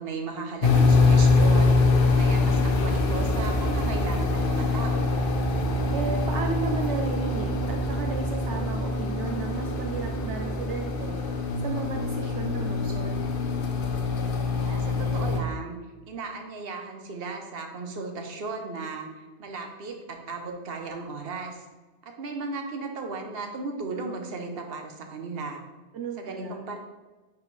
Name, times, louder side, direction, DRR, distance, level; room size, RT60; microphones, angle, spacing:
voice 1, 0.0-1.8 2.1-5.1 14.6-15.7 16.1-19.1 19.4-21.6 22.0-25.6 26.2-26.8, right 4 dB, 55° right, 3 dB, 1.1 m, -35 dB
sound 1, 0.6-15.4, left 3 dB, 55° left, 0.9 m, -24 dB
voice 2, 5.9-11.2 11.6-13.2 25.9-26.6, right 5 dB, 75° right, 3 dB, 1.0 m, -34 dB
9.8 x 4.7 x 3.3 m, 1.2 s
omnidirectional pair, 1.2 m